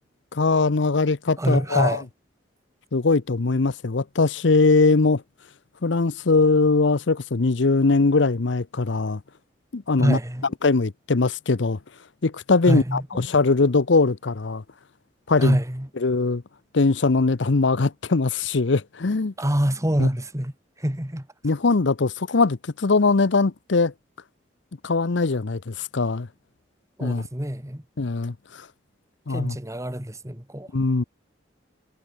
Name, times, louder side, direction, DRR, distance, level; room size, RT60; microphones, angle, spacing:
voice 1, 0.3-2.0 2.9-5.2 5.8-9.2 9.7-10.2 10.6-11.8 12.2-14.6 15.3-15.6 16.0-16.4 16.7-19.3 20.0-20.1 21.4-23.9 24.8-26.3 27.0-27.3 28.0-28.7 29.3-29.6 30.7-31.0, left 3 dB, 70° left, 0.8 m, -21 dB
voice 2, 1.4-2.0 10.0-10.5 12.7-13.2 15.4-15.9 19.4-20.5 20.8-21.3 27.0-27.8 29.3-30.7, equal, 15° right, 2.0 m, -24 dB
head